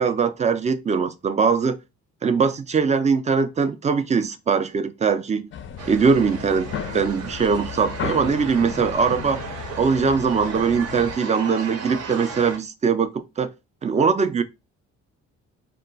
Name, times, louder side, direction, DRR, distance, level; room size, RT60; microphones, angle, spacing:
voice 1, 0.0-1.8 2.2-5.5 5.9-9.4 9.8-13.5 13.8-14.4, right 5 dB, 25° right, 0.3 m, -21 dB
sound 1, 5.5-11.2, left 8 dB, 40° left, 0.4 m, -34 dB
sound 2, 5.8-12.6, right 5 dB, 55° right, 0.7 m, -35 dB
2.3 x 2.2 x 3.8 m
cardioid pair, 90°, 30 cm